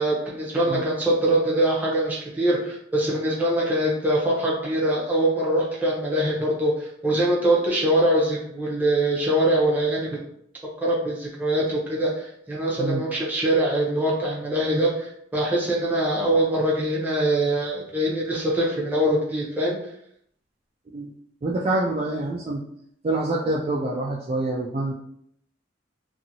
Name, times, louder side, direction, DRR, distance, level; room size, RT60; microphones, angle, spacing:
voice 1, 0.0-10.2 10.8-19.8, right 1 dB, 10° right, -5 dB, 0.7 m, -23 dB
voice 2, 21.4-22.6 23.0-24.9, right 2 dB, 35° right, -3 dB, 0.3 m, -26 dB
2.7 x 2.7 x 2.7 m, 0.70 s
head